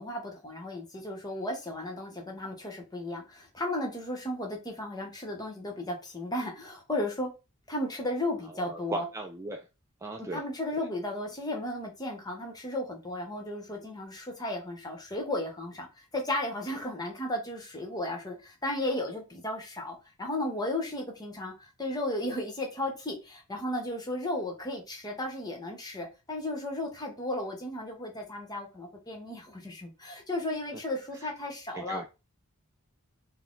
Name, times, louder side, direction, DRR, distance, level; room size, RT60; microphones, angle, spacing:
voice 1, 0.0-7.3 7.7-9.0 10.2-32.0, left 1 dB, 20° left, 1.0 m, -34 dB
voice 2, 8.5-9.6 10.0-10.4 10.8-10.9 31.1-31.3 31.7-32.1, right 2 dB, 15° right, 0.3 m, -37 dB
4.0 x 2.2 x 3.8 m
head